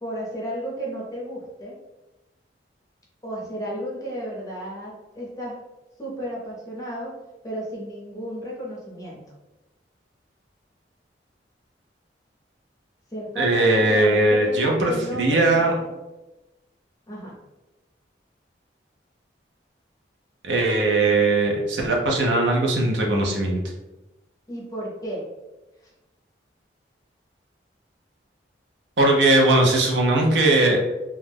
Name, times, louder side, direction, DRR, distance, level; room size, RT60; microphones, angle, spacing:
voice 1, 0.0-1.7 3.2-5.6 6.0-7.1 7.4-9.2 13.1-15.9 17.1-17.4 24.5-25.3, equal, 20° left, -4 dB, 0.6 m, -33 dB
voice 2, 13.4-15.7 20.4-23.6 29.0-30.8, right 2 dB, 80° right, -1 dB, 0.6 m, -19 dB
2.4 x 2.1 x 3.3 m, 1.0 s
head